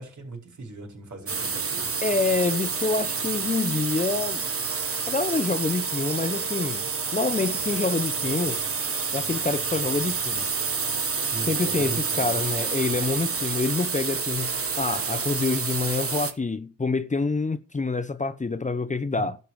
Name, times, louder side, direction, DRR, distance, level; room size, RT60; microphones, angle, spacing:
voice 1, 0.0-1.9 11.2-12.4 19.2-19.3, right 2 dB, 65° right, 5.2 m, -39 dB
sound 1, 1.3-16.3, right 5 dB, 45° right, 1.5 m, -28 dB
voice 2, 2.0-4.5 5.1-8.6 9.1-10.5 11.1-19.4, left 3 dB, 25° left, 0.8 m, -27 dB
11.5 x 5.4 x 7.6 m
cardioid pair, 60°, 31 cm